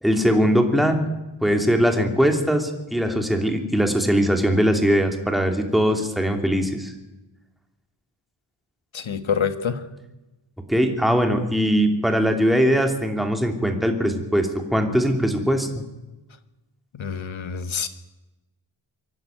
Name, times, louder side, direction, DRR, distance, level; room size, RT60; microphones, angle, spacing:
voice 1, 0.0-1.1 1.4-6.9 10.7-15.8, equal, ahead, 4 dB, 2.9 m, -21 dB
voice 2, 8.9-9.8 16.9-17.9, left 7 dB, 70° left, 10 dB, 1.7 m, -26 dB
24.5 x 11.5 x 9.2 m, 1.0 s
wide cardioid pair, 90°, 49 cm